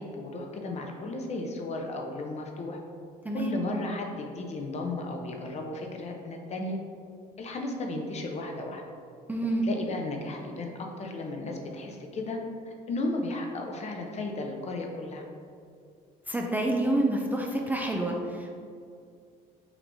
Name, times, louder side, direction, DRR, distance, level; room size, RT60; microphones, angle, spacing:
voice 1, 0.0-2.8 3.3-6.8 7.4-8.8 9.6-12.4 12.7-15.2, left 2 dB, 40° left, 2 dB, 0.6 m, -34 dB
voice 2, 3.2-3.6 9.3-9.7 16.3-18.6, right 1 dB, 10° right, 0 dB, 0.4 m, -28 dB
5.8 x 3.3 x 2.7 m, 2.3 s
cardioid pair, 110°, 17 cm